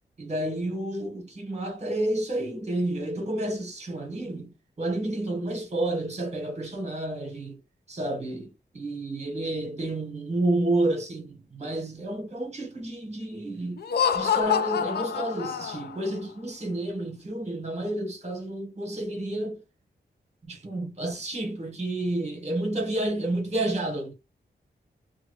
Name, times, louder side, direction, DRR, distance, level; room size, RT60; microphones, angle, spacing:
voice 1, 0.2-7.6 7.9-13.8 14.1-19.6 20.4-24.1, right 1 dB, 40° right, 1.4 m, -30 dB
Laughter, 13.8-16.1, left 8 dB, 65° left, 0.4 m, -26 dB
2.7 x 2.4 x 3.1 m
wide cardioid pair, 110°, 18 cm